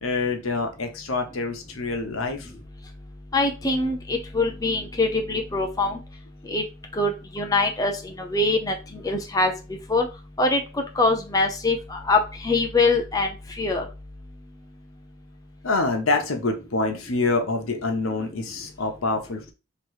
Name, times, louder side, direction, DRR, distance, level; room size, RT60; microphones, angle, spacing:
voice 1, 0.0-2.5 15.6-19.5, left 3 dB, 85° left, 4 dB, 0.9 m, -26 dB
voice 2, 3.3-6.0 6.5-6.6 6.9-9.5 9.9-10.1 10.4-10.6 11.0-13.3 13.6-13.9, left 2 dB, 15° left, 3 dB, 0.5 m, -23 dB
3.0 x 2.9 x 4.6 m, 0.30 s
head